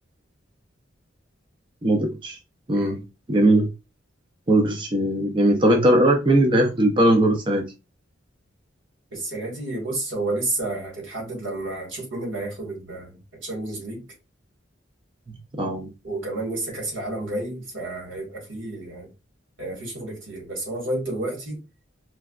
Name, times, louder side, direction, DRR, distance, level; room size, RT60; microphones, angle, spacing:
voice 1, 1.8-2.4 2.7-3.0 3.3-3.7 4.5-7.6 15.6-15.9, right 1 dB, 25° right, 0.6 m, -19 dB
voice 2, 9.1-14.0 16.0-19.1 19.6-21.6, right 2 dB, 85° right, 1.6 m, -31 dB
4.5 x 2.1 x 2.4 m
head